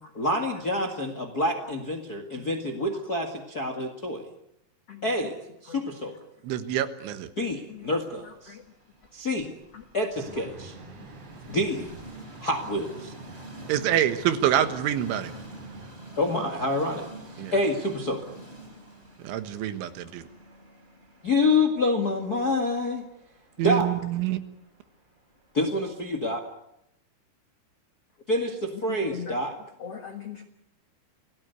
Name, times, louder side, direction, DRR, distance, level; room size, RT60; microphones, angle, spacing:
voice 1, 0.1-4.2 5.0-5.3 5.6-6.1 7.4-8.5 9.1-9.5 9.9-10.7 11.5-11.9 12.4-13.1 16.2-17.1 17.3-18.2 21.2-23.1 23.6-23.9 25.5-26.4 28.3-29.6, left 2 dB, 45° left, 5 dB, 1.2 m, -27 dB
voice 2, 2.4-2.9 4.9-5.0 5.7-5.8 7.7-7.9 8.5-8.6 9.7-9.8 10.6-10.7 11.0-11.1 28.9-29.3 29.8-30.4, left 8 dB, 75° left, 6 dB, 1.4 m, -41 dB
voice 3, 6.4-7.3 13.7-15.3 17.4-17.5 19.2-20.3 23.6-24.4, right 11 dB, 85° right, 10 dB, 3.8 m, -26 dB
Train, 7.8-25.9, right 1 dB, 15° right, 4.1 m, -47 dB
sound 1, 10.1-15.9, right 3 dB, 70° right, 6.9 m, -47 dB
27.0 x 18.0 x 8.2 m, 0.82 s
omnidirectional pair, 5.4 m